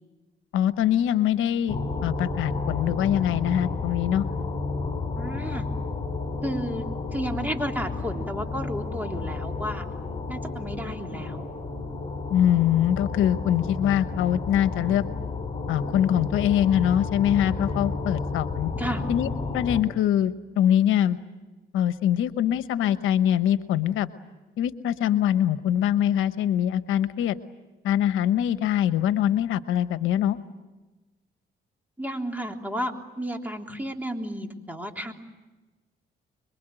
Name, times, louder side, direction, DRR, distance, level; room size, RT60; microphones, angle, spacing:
voice 1, 0.5-4.3 12.3-15.0 15.7-18.7 19.1-21.2 21.7-24.1 24.6-27.4 27.8-30.4, left 10 dB, 85° left, 12 dB, 1.0 m, -23 dB
sound 1, 1.7-19.8, left 3 dB, 25° left, 5.3 m, -31 dB
voice 2, 5.2-5.6 6.4-6.8 7.1-9.8 10.3-11.5 18.7-19.0 32.0-35.1, equal, 10° right, 3 dB, 3.4 m, -32 dB
26.0 x 23.0 x 9.0 m, 1.2 s
cardioid pair, 90°, 20 cm